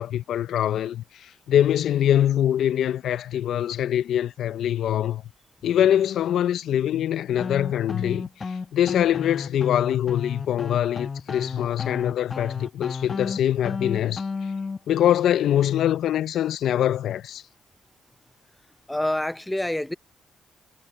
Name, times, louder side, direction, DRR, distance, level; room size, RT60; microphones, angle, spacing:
voice 1, 0.0-5.2 5.6-14.2 14.9-17.4, left 11 dB, 70° left, 0.5 m, -23 dB
sound 1, 7.4-14.8, left 4 dB, 30° left, 1.2 m, -32 dB
voice 2, 18.9-19.9, left 1 dB, 10° left, 0.5 m, -26 dB
cardioid pair, 90°, 0 cm